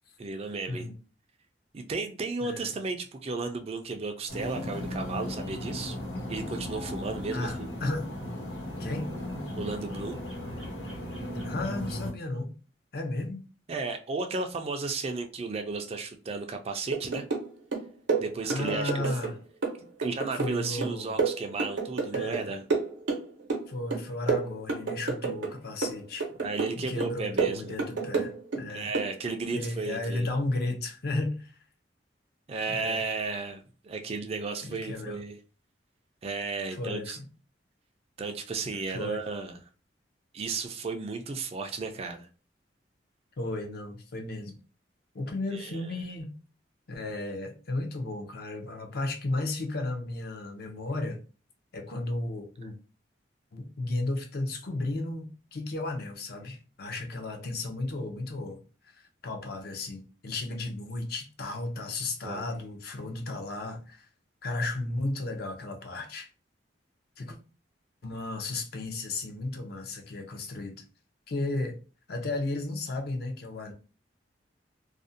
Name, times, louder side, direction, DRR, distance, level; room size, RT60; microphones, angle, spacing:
voice 1, 0.2-0.9 1.7-6.0 6.3-7.7 9.6-10.2 13.7-17.2 18.2-19.1 20.0-22.6 26.4-27.7 28.7-30.3 32.5-35.4 36.2-37.2 38.2-39.6 40.3-42.3 45.5-45.8 62.2-62.5, right 4 dB, 35° right, 0.3 m, -34 dB
sound 1, 4.3-12.1, left 1 dB, 80° left, 1.1 m, -36 dB
voice 2, 7.3-8.2 8.8-9.1 11.4-12.5 12.9-13.5 18.4-19.4 20.3-21.2 22.1-22.5 23.7-26.3 26.9-28.9 29.5-31.5 32.7-33.0 34.6-35.2 36.7-37.2 38.9-39.2 43.4-44.6 45.1-46.4 46.9-51.2 51.7-52.8 53.5-58.6 58.8-64.1 64.4-66.3 67.2-67.4 68.0-70.8 71.3-71.8 72.1-73.7, left 2 dB, 60° left, 0.5 m, -34 dB
sound 2, 16.9-17.5 17.7-19.3 19.6-22.4 22.7-23.7 23.9-25.5 25.8-26.7 27.0-28.6 28.9-29.1, right 4 dB, 85° right, 0.7 m, -29 dB
2.5 x 2.1 x 2.5 m
head